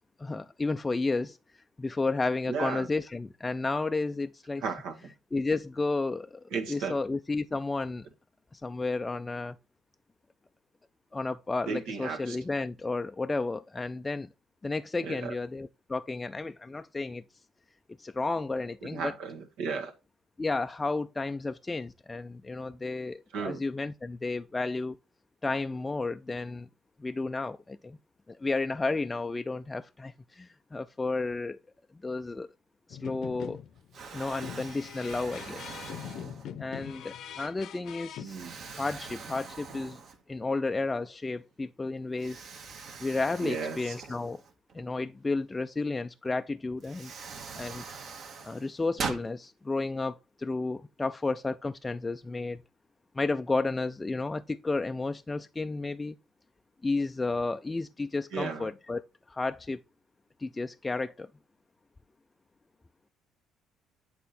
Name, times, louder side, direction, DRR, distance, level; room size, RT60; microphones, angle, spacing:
voice 1, 0.2-1.4 1.8-4.6 5.3-6.4 6.7-8.1 8.5-9.6 11.1-14.3 14.6-17.2 18.0-19.1 20.4-25.0 25.4-26.7 27.0-28.0 28.3-31.6 32.0-32.5 32.9-33.6 34.1-35.8 36.6-38.4 38.7-40.0 40.3-42.5 43.0-44.4 44.7-47.1 47.5-47.8 48.4-52.6 53.1-56.2 56.8-59.0 59.3-59.8 60.4-61.3, left 3 dB, 15° left, 0.3 m, -32 dB
voice 2, 2.5-2.9 4.6-5.0 6.5-7.0 11.7-12.4 15.0-15.3 18.8-19.9 23.3-23.6 38.2-38.5 43.4-43.9 58.3-58.7, right 5 dB, 85° right, 1.5 m, -34 dB
sound 1, 32.9-33.9 34.4-38.2, left 9 dB, 65° left, 0.7 m, -42 dB
Explosion, 33.2-33.6 33.9-36.8 37.4-37.5 38.2-40.5 40.8-40.9 42.2-44.8 46.2-46.3 46.8-49.3, right 5 dB, 55° right, 1.3 m, -42 dB
8.3 x 3.7 x 4.2 m
cardioid pair, 110°, 0 cm